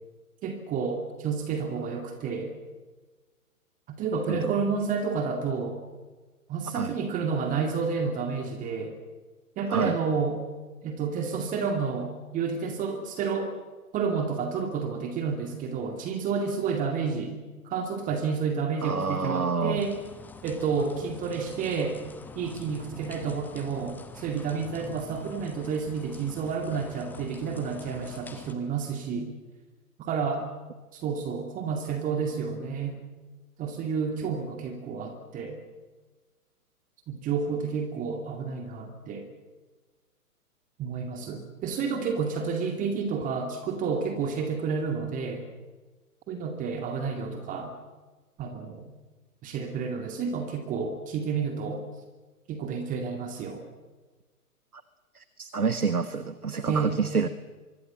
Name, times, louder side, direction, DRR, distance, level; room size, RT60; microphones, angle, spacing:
voice 1, 0.4-2.5 3.9-5.8 6.5-9.0 9.6-10.4 10.8-13.5 13.9-17.3 17.6-20.0 20.4-22.0 22.4-29.3 30.0-30.5 30.9-33.0 33.6-35.6 37.1-39.3 40.8-45.5 46.3-47.7 48.4-48.9 49.4-51.9 52.5-53.6 56.7-56.9, right 5 dB, 15° right, 5 dB, 2.2 m, -30 dB
voice 2, 4.3-4.6 6.7-7.0 9.7-10.0 18.8-19.9 54.7-54.8 55.1-57.3, right 5 dB, 75° right, 12 dB, 1.5 m, -28 dB
sound 1, 19.8-28.5, left 4 dB, 5° left, 0.8 m, -46 dB
25.0 x 22.0 x 7.5 m, 1.3 s
figure-of-eight pair, 120°, 45 cm